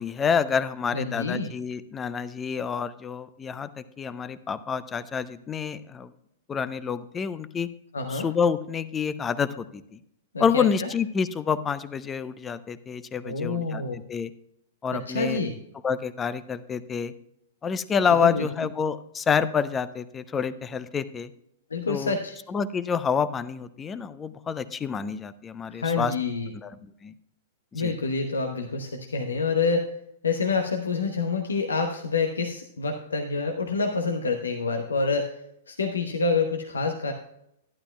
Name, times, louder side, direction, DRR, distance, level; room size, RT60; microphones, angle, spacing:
voice 1, 0.0-6.1 6.5-7.7 8.1-9.8 10.4-13.8 14.1-14.3 14.8-15.4 15.8-17.1 17.6-21.3 21.9-22.2 22.5-26.1 26.6-26.7 27.0-27.1 27.7-27.9, left 6 dB, 20° left, 14 dB, 0.6 m, -28 dB
voice 2, 0.9-1.5 7.9-8.3 10.3-10.9 13.2-14.0 14.9-15.5 18.1-18.5 21.7-22.3 25.7-26.5 27.7-30.0 30.2-35.4 35.7-37.1, left 4 dB, 80° left, 4 dB, 0.9 m, -27 dB
12.0 x 11.0 x 2.3 m, 0.76 s
figure-of-eight pair, 105°, 0 cm